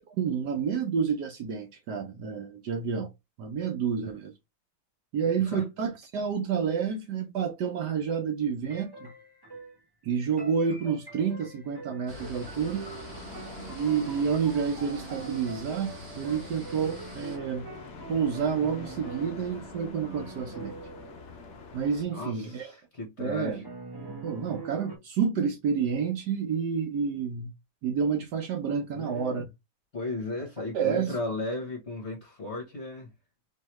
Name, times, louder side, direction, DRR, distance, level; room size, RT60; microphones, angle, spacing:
voice 1, 0.1-3.1 3.4-4.3 5.1-9.1 10.0-12.8 13.7-17.7 18.1-20.8 21.7-22.7 23.2-23.6 24.2-27.5 27.8-29.4 30.7-31.2, right 6 dB, 65° right, 1.2 m, -29 dB
sound 1, 8.7-9.8 10.4-22.1 23.6-25.0, right 4 dB, 20° right, 0.6 m, -44 dB
sound 2, 12.1-22.0, left 5 dB, 90° left, 0.6 m, -46 dB
sound 3, 12.1-17.4, right 2 dB, 40° right, 0.9 m, -46 dB
voice 2, 22.1-23.6 28.9-29.5 29.9-33.1, left 2 dB, 45° left, 1.0 m, -35 dB
4.3 x 3.1 x 3.0 m
omnidirectional pair, 2.2 m